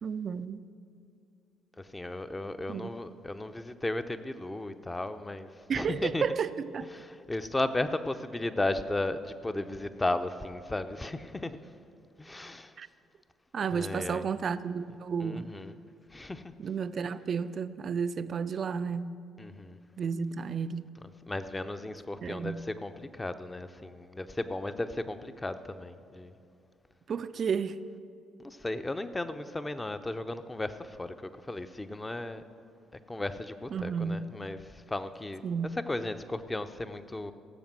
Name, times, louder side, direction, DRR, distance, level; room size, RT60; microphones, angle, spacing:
voice 1, 0.0-0.6 2.7-2.9 5.7-6.9 12.8-12.9 13.5-15.5 16.6-19.2 20.0-20.9 22.2-22.6 27.1-27.8 33.7-34.3 35.4-35.7, right 6 dB, 45° right, 0.4 m, -32 dB
voice 2, 1.8-6.2 6.9-11.6 12.2-12.8 13.7-14.2 15.2-15.8 16.1-16.5 19.4-19.8 21.2-26.3 28.4-32.4 33.1-35.4 35.9-37.3, left 2 dB, 15° left, 0.7 m, -35 dB
17.0 x 7.2 x 6.2 m
figure-of-eight pair, 45°, 0 cm